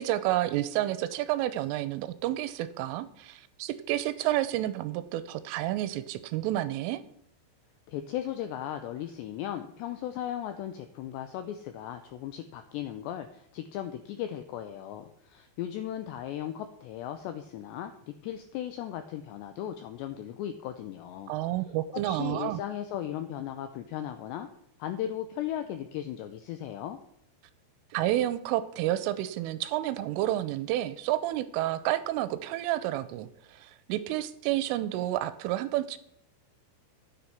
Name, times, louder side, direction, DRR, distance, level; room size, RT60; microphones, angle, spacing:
voice 1, 0.0-7.0 21.3-22.6 27.9-36.0, right 14 dB, 80° right, 14 dB, 3.1 m, -30 dB
voice 2, 7.9-21.3 21.9-24.5 24.8-27.0, left 11 dB, 90° left, 8 dB, 2.5 m, -37 dB
13.0 x 9.1 x 5.9 m, 0.72 s
omnidirectional pair, 6.0 m